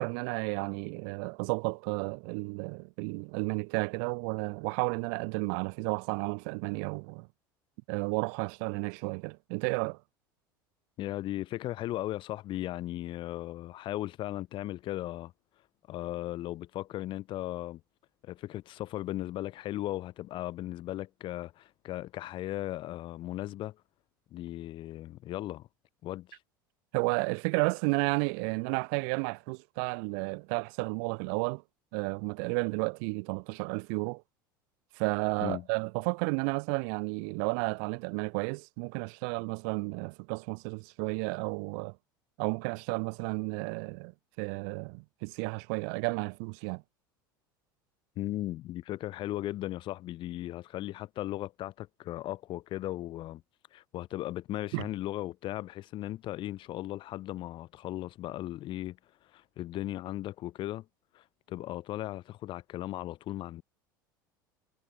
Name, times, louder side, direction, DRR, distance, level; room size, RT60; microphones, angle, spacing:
voice 1, 0.0-7.3 7.9-10.0 26.9-31.6 31.9-34.2 35.0-42.0 42.4-44.1 44.4-46.8 54.7-54.8, right 40 dB or more, 60° right, 0.8 m, -32 dB
voice 2, 11.0-15.3 15.9-17.8 18.2-23.8 24.3-25.7 26.0-26.4 35.4-35.7 48.2-53.4 53.7-59.0 59.3-60.8 61.1-63.6, left 15 dB, 45° left, 1.6 m, -37 dB
figure-of-eight pair, 75°, 11 cm